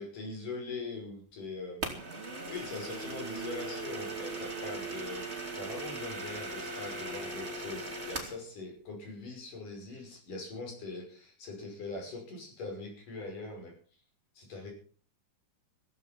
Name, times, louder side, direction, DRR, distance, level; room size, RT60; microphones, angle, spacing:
voice 1, 0.0-2.0 2.5-13.7 14.4-14.7, left 3 dB, 65° left, 1 dB, 7.3 m, -42 dB
sound 1, 1.8-8.4, right 2 dB, 20° right, 3.0 m, -39 dB
15.5 x 15.0 x 5.9 m, 0.43 s
omnidirectional pair, 4.0 m